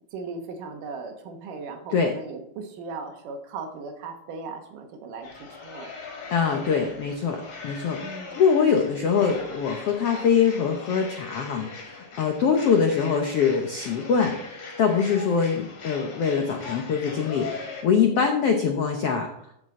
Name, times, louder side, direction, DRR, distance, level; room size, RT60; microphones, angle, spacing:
voice 1, 0.1-5.9 6.5-6.9 8.0-8.4 18.1-18.2, right 4 dB, 70° right, 4 dB, 2.5 m, -38 dB
sound 1, 5.2-17.8, left 4 dB, 55° left, 3.2 m, -40 dB
voice 2, 6.3-19.3, left 6 dB, 90° left, 3 dB, 1.3 m, -23 dB
13.5 x 6.5 x 3.7 m, 0.74 s
omnidirectional pair, 4.1 m